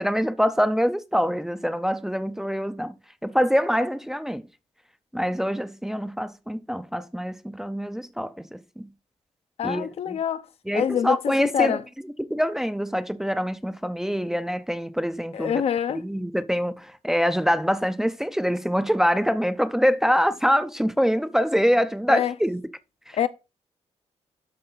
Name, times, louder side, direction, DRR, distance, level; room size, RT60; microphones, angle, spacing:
voice 1, 0.0-3.0 3.2-4.4 5.1-8.9 9.6-10.2 10.7-11.8 12.3-15.6 15.9-22.6 23.1-23.2, equal, 5° right, 0.5 m, -25 dB
voice 2, 9.6-10.5 10.7-11.8 15.3-16.0 22.1-22.3 23.1-23.3, left 9 dB, 60° left, 0.7 m, -25 dB
12.5 x 4.7 x 3.9 m
wide cardioid pair, 155°, 12 cm